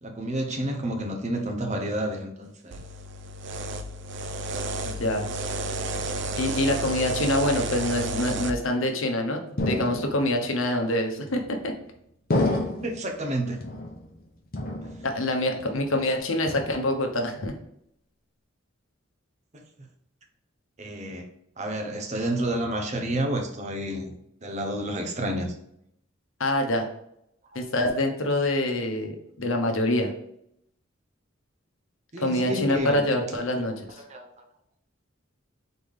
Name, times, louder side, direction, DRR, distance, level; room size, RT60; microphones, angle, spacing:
voice 1, 0.0-2.8 12.8-13.6 19.5-19.9 20.8-21.3 21.6-24.1 24.4-25.5 32.1-33.1 34.0-34.3, right 1 dB, 35° right, 3 dB, 0.8 m, -30 dB
sound 1, 2.7-8.5, right 1 dB, 60° right, 0.4 m, -31 dB
voice 2, 4.8-5.3 6.4-11.7 15.0-17.5 26.4-26.9 27.5-30.1 32.2-34.0, left 1 dB, 80° left, 4 dB, 0.8 m, -26 dB
sound 2, 9.6-10.4 11.3-11.8 12.3-13.1 13.6-14.2 14.5-15.3 15.6-16.0 16.5-17.1, left 2 dB, 45° left, 0.8 m, -30 dB
4.0 x 3.4 x 3.5 m, 0.76 s
head